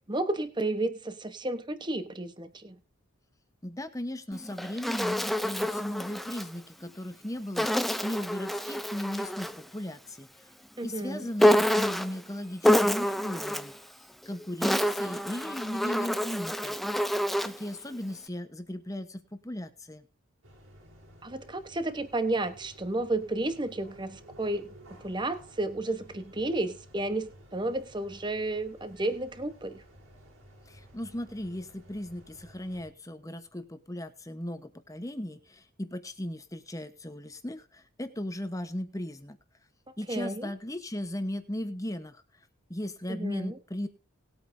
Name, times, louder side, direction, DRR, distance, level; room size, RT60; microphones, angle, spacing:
voice 1, 0.0-2.8 10.8-11.3 21.2-24.7 25.0-29.8 40.1-40.5 43.1-43.6, right 2 dB, 20° right, 10 dB, 1.0 m, -32 dB
voice 2, 3.6-10.3 10.8-13.7 14.2-16.8 17.4-20.0 30.7-39.4 40.0-42.2 42.7-43.9, left 1 dB, 15° left, 9 dB, 1.0 m, -37 dB
Insect, 4.3-6.5 7.6-9.6 11.4-12.2 12.6-13.8 14.4-17.7, equal, ahead, 0.4 m, -27 dB
sound 1, 20.4-32.9, equal, 75° right, 3.8 m, -54 dB
19.5 x 8.6 x 2.7 m, 0.31 s
head